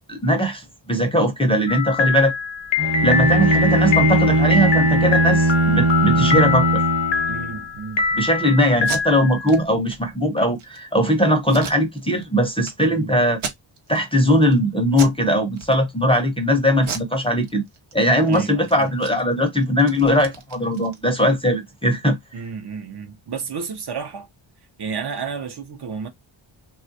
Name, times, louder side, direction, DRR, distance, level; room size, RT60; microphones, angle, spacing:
voice 1, 0.1-2.3 3.0-6.8 8.2-13.4 13.9-17.6 17.9-22.2, equal, 10° left, 0.5 m, -19 dB
sound 1, 1.7-9.6, left 5 dB, 60° left, 0.6 m, -24 dB
Bowed string instrument, 2.8-7.6, right 2 dB, 35° right, 1.1 m, -19 dB
voice 2, 7.3-8.8 12.8-13.1 18.3-18.9 22.3-24.3 24.8-26.1, right 5 dB, 55° right, 0.7 m, -32 dB
Packing tape duct tape, 8.7-9.0 9.4-9.6 9.9-10.0 10.4-10.8 11.5-12.3 12.6-12.7 13.3-14.0 14.4-14.6 14.9-15.2 15.5-16.2 16.8-17.9 18.2-18.4 18.7-21.3, right 5 dB, 90° right, 1.0 m, -34 dB
3.2 x 2.3 x 2.6 m
wide cardioid pair, 150°, 48 cm